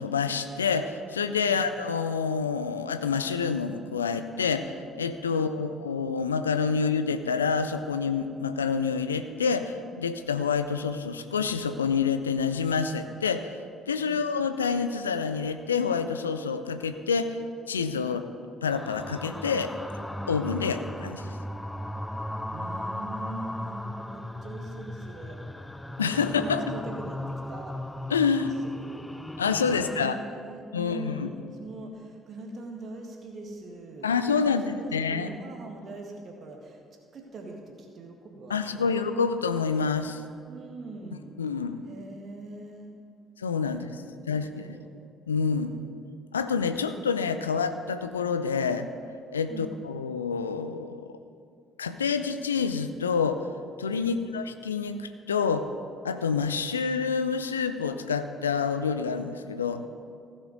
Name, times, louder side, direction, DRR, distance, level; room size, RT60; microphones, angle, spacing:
voice 1, 0.0-13.6 13.9-17.4 17.7-18.3 18.6-19.7 20.3-21.3 26.0-26.6 28.1-28.5 29.4-30.2 30.7-31.3 34.0-35.3 38.5-40.2 41.4-41.8 43.4-44.0 44.3-44.7 45.3-45.7 46.3-48.9 49.3-51.1 51.8-53.5 53.8-55.7 56.0-59.8, left 5 dB, 80° left, 10 dB, 0.4 m, -27 dB
voice 2, 5.3-5.7 14.1-14.2 22.5-25.4 26.1-27.8 28.8-29.0 29.7-36.8 37.1-39.0 40.5-41.3 41.8-42.9 43.7-44.9 49.5-49.7 54.0-54.2, right 2 dB, 45° right, 1 dB, 1.8 m, -42 dB
sound 1, 18.7-30.1, left 1 dB, 10° left, 0.4 m, -37 dB
15.5 x 6.2 x 5.2 m, 2.3 s
figure-of-eight pair, 45°, 0 cm